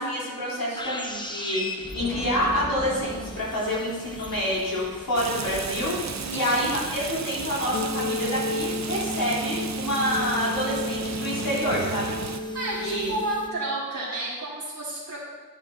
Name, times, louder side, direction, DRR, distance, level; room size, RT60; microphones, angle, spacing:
voice 1, 0.0-12.2 12.7-13.1, equal, 80° left, -7 dB, 3.7 m, -27 dB
sound 1, 0.8-13.5, left 1 dB, 15° left, 0.8 m, -41 dB
Rain, 5.1-12.4, right 6 dB, 55° right, 0.6 m, -35 dB
voice 2, 6.2-6.7 12.5-15.2, right 2 dB, 70° right, -9 dB, 2.3 m, -31 dB
sound 2, 7.7-13.6, left 2 dB, 35° left, 1.0 m, -32 dB
10.0 x 10.0 x 3.8 m, 1.4 s
wide cardioid pair, 85°, 34 cm